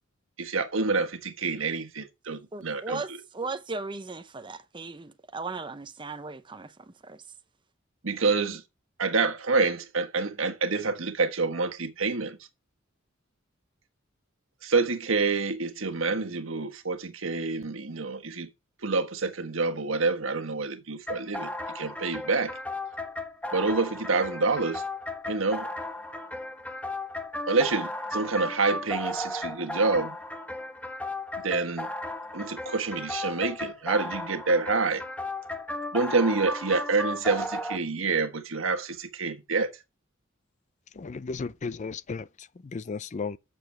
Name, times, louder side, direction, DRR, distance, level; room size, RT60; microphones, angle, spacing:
voice 1, 0.4-3.0 8.0-8.6 9.0-12.4 14.6-18.5 18.8-21.5 21.7-22.6 23.5-24.8 25.3-25.7 27.5-30.2 31.4-31.9 32.3-35.0 35.9-39.7, right 4 dB, 85° right, 1.4 m, -27 dB
voice 2, 2.5-7.2, right 3 dB, 25° right, 0.8 m, -37 dB
sound 1, 21.1-37.8, left 1 dB, 5° left, 1.1 m, -35 dB
voice 3, 40.9-43.4, left 4 dB, 35° left, 0.4 m, -35 dB
8.4 x 6.9 x 5.8 m
head